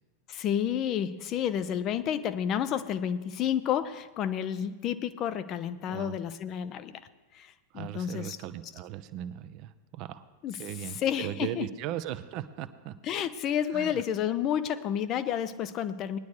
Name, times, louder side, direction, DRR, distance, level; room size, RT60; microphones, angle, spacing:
voice 1, 0.3-7.0 7.3-8.4 10.4-10.6 11.0-11.7 13.0-16.2, left 9 dB, 35° left, 12 dB, 0.6 m, -30 dB
voice 2, 7.7-10.2 10.6-12.9 13.7-14.0, right 12 dB, 40° right, 12 dB, 0.6 m, -38 dB
19.5 x 10.5 x 3.2 m, 1.3 s
figure-of-eight pair, 90°, 0 cm